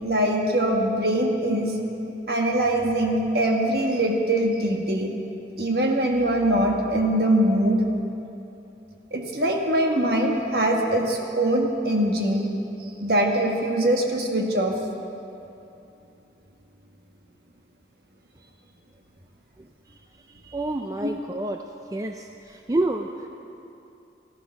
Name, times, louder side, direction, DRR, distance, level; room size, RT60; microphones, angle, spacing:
voice 1, 0.0-1.7 2.3-5.1 5.6-7.8 9.1-12.5 13.0-14.7 21.0-21.1, right 1 dB, 55° right, 1 dB, 1.5 m, -22 dB
voice 2, 19.6-20.0 20.3-21.6 21.9-23.3, right 2 dB, 20° right, 5 dB, 0.4 m, -29 dB
14.5 x 12.0 x 5.7 m, 2.8 s
head